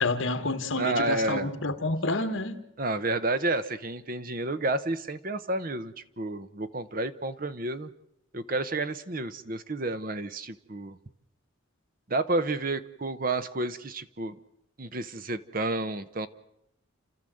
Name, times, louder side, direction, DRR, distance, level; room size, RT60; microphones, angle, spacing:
voice 1, 0.0-2.6, left 2 dB, 70° left, 1.8 m, -29 dB
voice 2, 0.8-1.5 2.8-7.9 8.3-11.0 12.1-14.4 14.8-16.3, right 2 dB, 40° right, 0.9 m, -30 dB
30.0 x 13.5 x 7.8 m
head